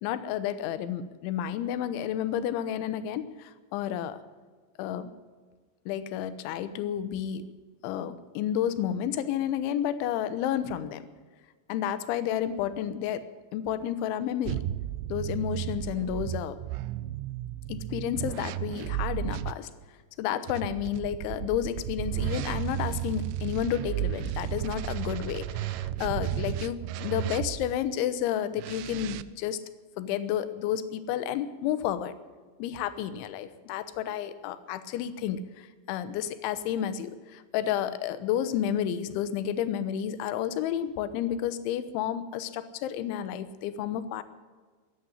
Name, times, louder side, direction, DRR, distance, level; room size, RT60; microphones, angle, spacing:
voice 1, 0.0-4.2 4.8-5.1 5.9-7.5 7.8-11.0 11.7-13.3 13.5-14.6 15.1-16.6 17.7-19.7 20.2-29.6 30.0-32.1 32.6-44.2, left 10 dB, 80° left, 12 dB, 3.2 m, -31 dB
sound 1, 14.4-19.5 20.5-27.8 28.6-29.2, right 13 dB, 85° right, 2.5 m, -33 dB
14.0 x 10.0 x 9.8 m, 1.4 s
omnidirectional pair, 5.4 m